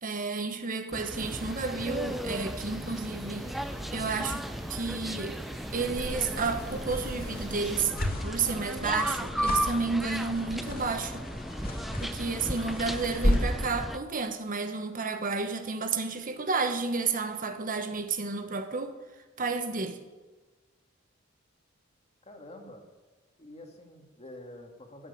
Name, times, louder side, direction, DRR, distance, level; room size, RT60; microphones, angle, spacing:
voice 1, 0.0-3.5 3.9-5.4 5.7-7.9 8.2-11.2 12.0-19.0 19.4-20.0, right 4 dB, 45° right, 1.2 m, -31 dB
sound 1, 0.9-14.0, equal, ahead, 0.6 m, -36 dB
sound 2, 1.2-7.9, right 1 dB, 15° right, 1.4 m, -43 dB
sound 3, 5.6-13.7, left 1 dB, 50° left, 2.4 m, -34 dB
voice 2, 22.2-22.8 23.4-25.1, left 1 dB, 30° left, 2.4 m, -48 dB
12.5 x 11.0 x 9.6 m
head